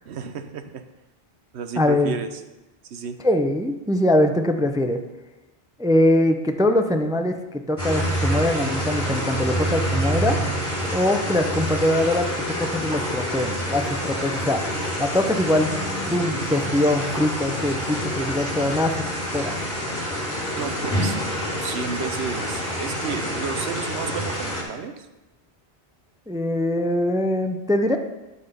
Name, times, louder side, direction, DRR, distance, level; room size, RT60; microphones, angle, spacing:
voice 1, 0.0-0.8 1.5-2.4 2.8-3.2 20.6-21.2 21.6-25.1, right 6 dB, 85° right, 9 dB, 1.1 m, -32 dB
voice 2, 1.8-2.1 3.2-5.0 5.8-10.4 10.9-14.6 15.0-15.7 16.1-19.0 19.3-19.5 26.3-28.0, left 1 dB, 5° right, 6 dB, 0.3 m, -22 dB
sound 1, 7.8-24.6, equal, 20° left, 3.4 m, -27 dB
12.0 x 4.2 x 6.8 m, 1.0 s
omnidirectional pair, 1.1 m